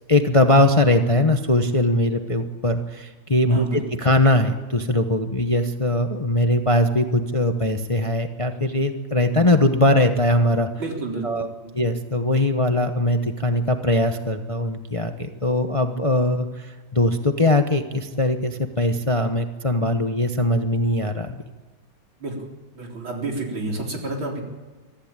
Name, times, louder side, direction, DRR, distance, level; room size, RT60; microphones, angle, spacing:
voice 1, 0.1-10.7 11.2-11.5 11.7-21.4, left 1 dB, 25° left, 6 dB, 0.7 m, -21 dB
voice 2, 3.5-3.8 10.8-11.7 22.2-22.4 22.8-24.4, right 3 dB, 90° right, 0 dB, 4.6 m, -30 dB
24.0 x 14.5 x 8.9 m, 1.3 s
omnidirectional pair, 2.1 m